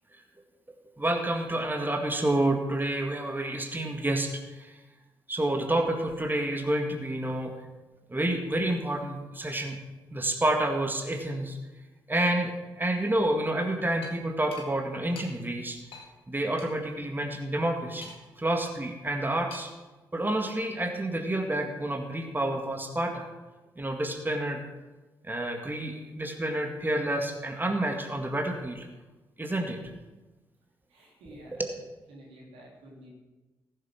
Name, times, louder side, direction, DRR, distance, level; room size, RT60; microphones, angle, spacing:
voice 1, 1.0-4.8 5.3-7.5 8.1-9.8 10.1-11.6 12.1-15.8 16.3-18.1 18.4-19.7 20.1-23.3 23.8-24.6 25.2-28.9 29.4-29.8 31.5-31.7, right 1 dB, 20° right, 3 dB, 2.0 m, -29 dB
sound 1, 14.0-14.1 14.5-14.7 15.1-15.3 15.9-16.1 16.6-16.7 18.0-18.4 19.5-19.8, left 3 dB, 70° left, 1.9 m, -45 dB
voice 2, 30.9-31.6 32.1-33.1, right 1 dB, 85° right, -2 dB, 2.9 m, -50 dB
14.5 x 7.6 x 6.1 m, 1.2 s
hypercardioid pair, 40°, 10 cm